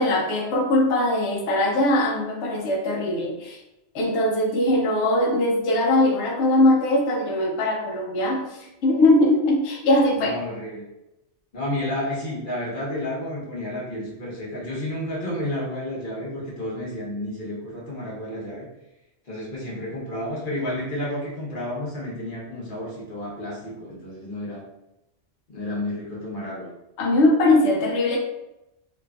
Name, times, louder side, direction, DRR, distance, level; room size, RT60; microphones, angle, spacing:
voice 1, 0.0-3.6 3.9-10.3 27.0-28.2, left 1 dB, 75° left, -1 dB, 0.9 m, -21 dB
voice 2, 10.1-10.9 11.5-18.6 19.2-24.6 25.5-26.7, left 1 dB, 45° left, -6 dB, 1.1 m, -31 dB
2.8 x 2.5 x 2.3 m, 0.92 s
omnidirectional pair, 1.2 m